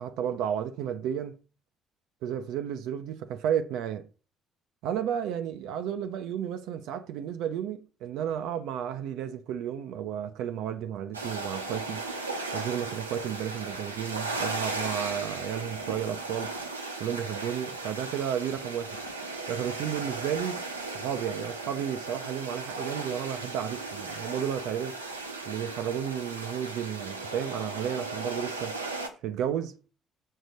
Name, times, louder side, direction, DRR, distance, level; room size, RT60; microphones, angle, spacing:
voice 1, 0.0-1.4 2.2-4.0 4.8-12.0 12.5-16.5 17.0-19.0 19.5-20.6 20.9-25.0 25.5-28.8 29.2-29.7, right 9 dB, 60° right, 0.5 m, -32 dB
sound 1, 11.1-29.1, right 3 dB, 90° right, 0.9 m, -36 dB
6.6 x 4.0 x 6.4 m
figure-of-eight pair, 50°, 0 cm